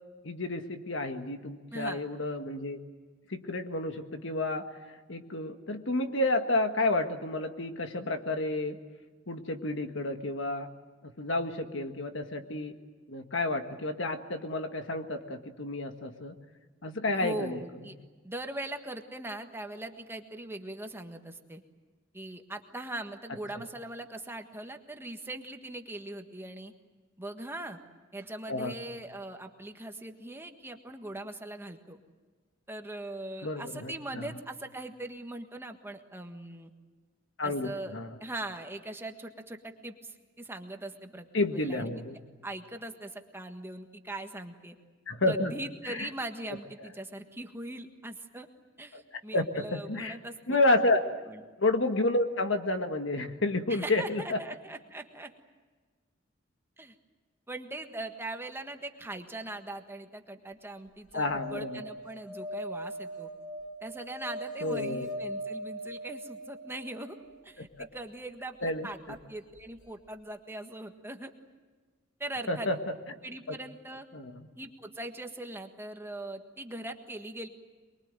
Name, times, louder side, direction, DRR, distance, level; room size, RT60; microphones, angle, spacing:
voice 1, 0.2-2.8 3.3-4.7 5.1-8.8 9.3-10.7 11.0-12.7 13.1-16.3 16.8-17.6 23.5-23.6 28.5-28.7 33.4-34.3 37.4-38.2 41.3-42.2 45.1-45.5 45.9-46.1 48.9-49.0 49.3-50.2 50.5-51.1 51.6-54.4 61.1-61.8 64.6-65.1 67.8-67.9 68.6-68.9 72.5-72.8 73.5-73.6 74.1-74.5, left 2 dB, 70° left, 6 dB, 1.7 m, -30 dB
voice 2, 1.7-2.0 17.1-18.0 18.2-21.6 22.1-26.7 27.2-27.8 28.1-32.0 32.7-36.7 37.4-37.9 38.2-41.3 41.5-42.0 42.4-44.7 45.3-48.5 48.8-50.6 51.3-51.4 53.7-55.3 56.8-57.0 57.5-63.3 63.8-67.2 67.4-71.3 72.2-72.7 73.2-74.1 74.6-77.5, right 1 dB, 10° right, 5 dB, 1.5 m, -41 dB
sound 1, 61.1-67.3 69.6-69.7 69.8-69.9, equal, 90° left, 2.6 m, -40 dB
24.0 x 22.0 x 9.0 m, 1.4 s
head